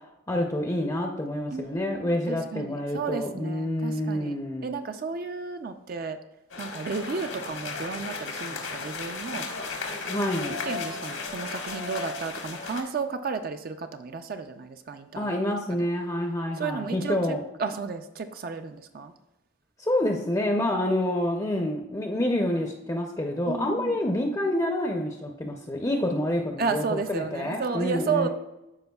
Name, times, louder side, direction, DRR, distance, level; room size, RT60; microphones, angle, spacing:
voice 1, 0.3-4.7 10.1-10.5 15.2-17.4 19.8-28.3, left 1 dB, 15° left, 2 dB, 0.5 m, -28 dB
voice 2, 1.5-4.4 4.6-6.2 6.6-9.5 10.5-15.3 16.6-19.1 23.5-23.9 26.6-28.3, right 5 dB, 45° right, 8 dB, 0.4 m, -33 dB
sound 1, 6.5-12.8, left 4 dB, 85° left, 1.3 m, -35 dB
13.5 x 4.9 x 2.3 m, 0.96 s
head